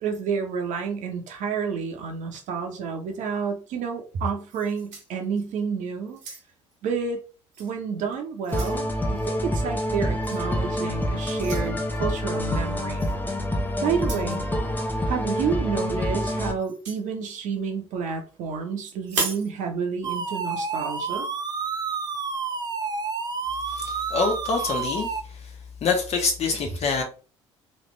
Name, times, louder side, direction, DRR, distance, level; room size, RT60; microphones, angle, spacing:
voice 1, 0.0-6.2 6.8-7.2 7.6-13.1 13.8-14.4 15.0-21.3, right 6 dB, 55° right, 0.9 m, -30 dB
sound 1, 4.5-5.6 6.1-6.7 7.5-7.7 8.1-8.8 10.2-10.5 11.4-11.7 13.0-13.2 13.9-14.4 16.6-17.0 19.0-19.5, right 4 dB, 80° right, 1.1 m, -34 dB
sound 2, 8.5-16.5, equal, 10° left, 0.8 m, -27 dB
sound 3, 20.0-25.2, right 5 dB, 25° right, 0.6 m, -30 dB
voice 2, 23.7-25.5 25.8-27.0, left 4 dB, 45° left, 1.3 m, -26 dB
3.2 x 2.8 x 3.2 m
figure-of-eight pair, 55°, 15 cm